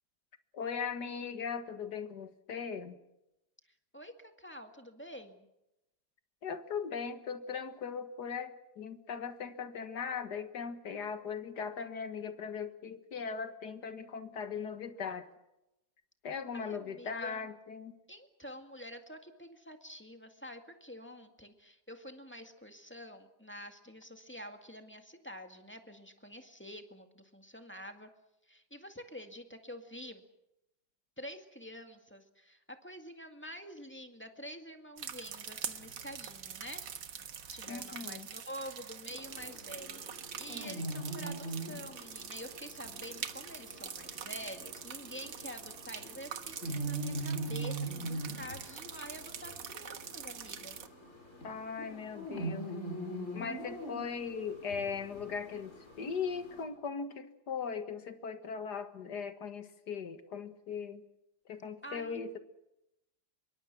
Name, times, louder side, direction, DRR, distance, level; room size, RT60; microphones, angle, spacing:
voice 1, 0.5-3.0 6.4-15.3 16.2-17.9 37.7-38.3 51.4-52.7 53.3-61.0 61.5-62.4, left 6 dB, 65° left, 9 dB, 2.1 m, -39 dB
voice 2, 3.9-5.5 16.5-17.5 18.1-28.1 28.5-30.2 31.2-36.8 37.5-50.8 61.8-62.2, equal, 5° left, 6 dB, 1.9 m, -48 dB
sound 1, 35.0-50.9, right 8 dB, 75° right, 2.0 m, -44 dB
sound 2, 39.1-56.6, right 2 dB, 40° left, 6.2 m, -42 dB
25.5 x 23.0 x 6.1 m, 0.89 s
omnidirectional pair, 2.0 m